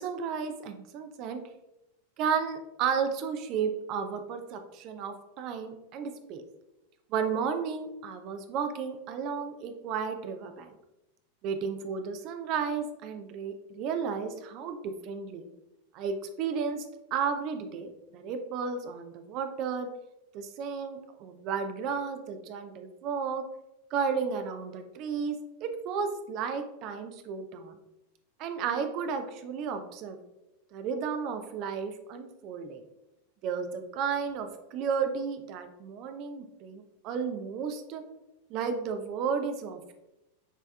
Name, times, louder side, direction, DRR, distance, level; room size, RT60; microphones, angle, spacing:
voice 1, 0.0-1.4 2.2-6.4 7.1-10.7 11.4-15.5 15.9-16.9 17.1-19.9 20.3-23.4 23.9-27.8 28.4-30.2 30.7-32.8 33.4-38.0 38.5-39.9, right 6 dB, 40° right, 7 dB, 0.5 m, -33 dB
6.5 x 3.4 x 2.3 m, 0.92 s
figure-of-eight pair, 90°, 0 cm